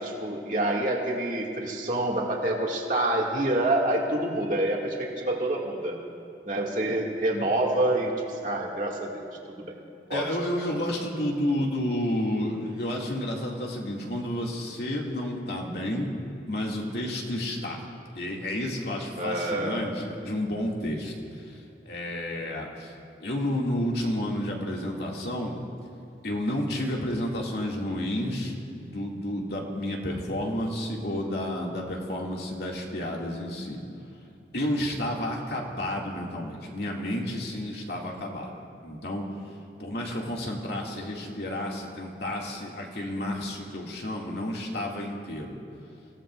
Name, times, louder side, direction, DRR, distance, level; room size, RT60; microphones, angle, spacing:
voice 1, 0.0-6.0 6.4-9.8 10.1-10.3 19.2-19.8, right 1 dB, 45° right, -2 dB, 2.2 m, -27 dB
voice 2, 10.1-16.1 16.5-17.8 18.1-21.1 21.5-22.9 23.2-25.6 26.2-33.8 34.5-39.3 39.8-45.6, left 1 dB, 65° left, -2 dB, 2.3 m, -31 dB
29.0 x 17.0 x 2.5 m, 2.5 s
head